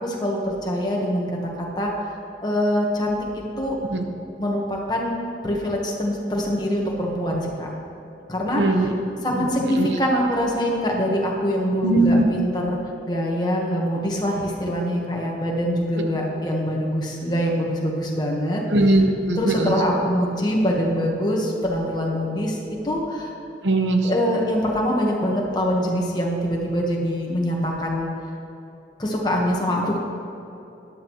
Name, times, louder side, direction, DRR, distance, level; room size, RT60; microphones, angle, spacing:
voice 1, 0.0-1.3 1.6-2.1 2.4-3.2 3.6-3.8 4.4-5.1 5.4-7.7 8.3-8.9 9.2-12.8 13.0-19.1 19.3-22.6 22.8-23.3 24.0-28.1 29.0-30.0, equal, 25° left, -2 dB, 1.4 m, -24 dB
voice 2, 8.6-8.9 9.8-9.9 11.8-12.2 18.7-19.7 23.6-24.0, right 2 dB, 80° right, 4 dB, 1.0 m, -19 dB
13.5 x 10.5 x 3.1 m, 2.9 s
head